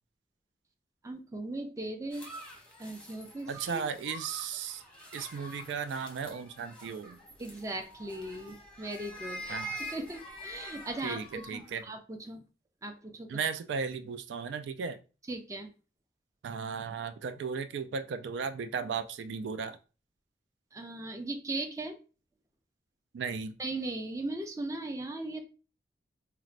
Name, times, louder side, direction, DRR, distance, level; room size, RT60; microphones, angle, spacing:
voice 1, 1.0-2.3 2.8-3.8 5.1-5.3 7.4-9.6 9.9-12.4 12.8-13.3 15.3-15.7 20.7-22.0 23.6-25.4, right 2 dB, 20° right, 5 dB, 0.4 m, -38 dB
sound 1, 2.1-11.8, right 1 dB, 5° left, 0.8 m, -46 dB
voice 2, 3.5-4.8 5.1-7.2 9.5-9.8 11.0-11.8 13.3-15.0 16.4-19.8 23.1-23.6, right 6 dB, 90° right, 10 dB, 0.3 m, -35 dB
4.1 x 2.1 x 2.5 m, 0.34 s
head